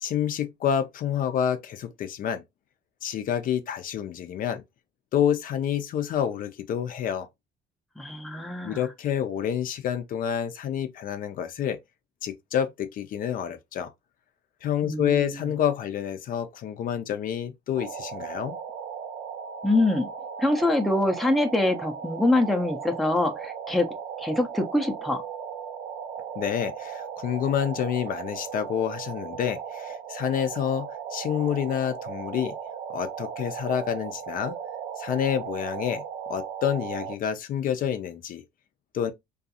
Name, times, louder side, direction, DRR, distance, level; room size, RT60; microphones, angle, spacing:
voice 1, 0.0-2.4 3.0-4.6 5.1-7.3 8.6-11.8 12.2-13.9 14.6-18.6 26.4-32.6 32.9-34.5 35.0-36.0 36.3-38.4 38.9-39.1, left 9 dB, 55° left, 0.4 m, -28 dB
voice 2, 8.0-8.8 14.8-15.4 19.6-20.1 20.4-23.9 24.2-25.2, left 2 dB, ahead, 0.5 m, -24 dB
sound 1, 17.7-37.1, right 7 dB, 80° right, 0.5 m, -37 dB
2.4 x 2.3 x 2.6 m
cardioid pair, 110°, 17 cm